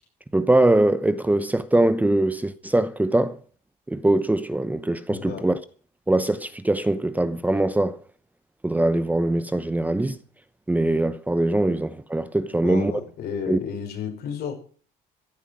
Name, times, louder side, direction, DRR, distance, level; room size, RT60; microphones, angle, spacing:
voice 1, 0.3-3.4 3.9-5.6 6.1-8.0 8.6-10.2 10.7-12.9 13.5-13.6, right 1 dB, 10° right, 0.9 m, -22 dB
voice 2, 5.1-5.4 12.6-14.5, left 7 dB, 70° left, 5.1 m, -32 dB
15.5 x 10.5 x 6.3 m
cardioid pair, 110°, 17 cm